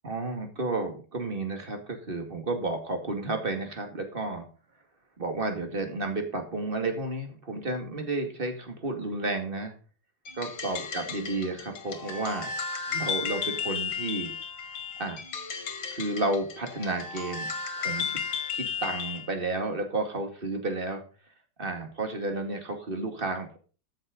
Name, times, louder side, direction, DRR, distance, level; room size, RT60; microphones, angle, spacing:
voice 1, 0.0-4.5 5.2-9.7 10.4-12.5 12.9-14.3 15.0-15.2 15.9-17.5 17.8-18.2 18.5-21.0 21.6-23.6, right 2 dB, 25° right, 5 dB, 2.4 m, -32 dB
sound 1, 10.3-19.3, left 6 dB, 80° left, 2.4 m, -34 dB
13.5 x 6.6 x 5.3 m, 0.37 s
omnidirectional pair, 2.1 m